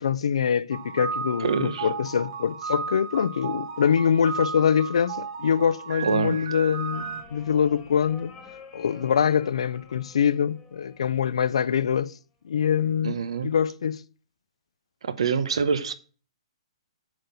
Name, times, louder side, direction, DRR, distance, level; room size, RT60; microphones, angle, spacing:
voice 1, 0.0-8.3 8.7-12.1 12.4-13.2 13.4-14.0, left 7 dB, 75° left, 0.5 m, -24 dB
sound 1, 0.7-7.2, right 5 dB, 45° right, 2.1 m, -34 dB
voice 2, 1.4-1.9 6.0-6.4 13.0-13.5 15.1-15.9, right 6 dB, 75° right, 0.9 m, -25 dB
sound 2, 6.9-11.9 13.1-13.6, left 4 dB, 10° left, 1.5 m, -50 dB
7.7 x 4.2 x 6.8 m
hypercardioid pair, 155°, 3 cm